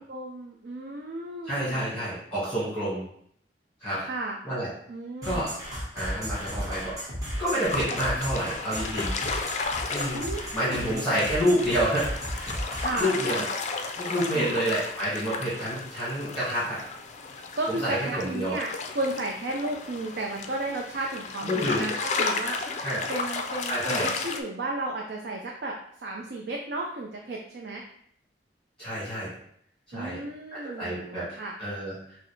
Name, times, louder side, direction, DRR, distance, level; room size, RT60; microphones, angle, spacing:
voice 1, 0.0-1.9 4.0-4.4 4.9-5.5 10.1-10.9 12.8-13.5 14.3-14.7 17.5-22.8 23.1-27.8 29.9-31.5, right 2 dB, 65° right, 0 dB, 0.5 m, -34 dB
voice 2, 1.4-3.0 3.8-4.0 4.4-4.7 5.2-5.5 5.9-7.0 7.4-9.1 9.9-10.2 10.5-12.1 12.4-13.4 13.9-16.8 17.7-18.6 21.4-21.9 22.8-23.0 23.7-24.1 28.8-29.3 29.9-30.2 30.5-31.3 31.6-32.2, equal, 5° left, -10 dB, 1.6 m, -28 dB
sound 1, 5.2-13.2, equal, 20° right, 1.2 m, -34 dB
sound 2, 7.5-24.4, left 4 dB, 40° left, 0.4 m, -34 dB
5.9 x 2.0 x 3.1 m, 0.67 s
head